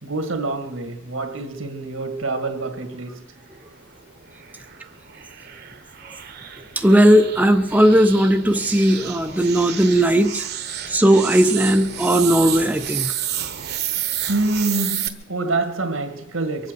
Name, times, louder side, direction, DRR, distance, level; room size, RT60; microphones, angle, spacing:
voice 1, 0.0-3.2 14.3-16.7, right 2 dB, 80° right, 2.0 m, -26 dB
sound 1, 3.5-15.1, right 10 dB, 50° right, 1.1 m, -31 dB
voice 2, 6.8-10.5 10.9-13.1, right 1 dB, 10° right, 0.7 m, -17 dB
24.0 x 8.4 x 6.7 m
head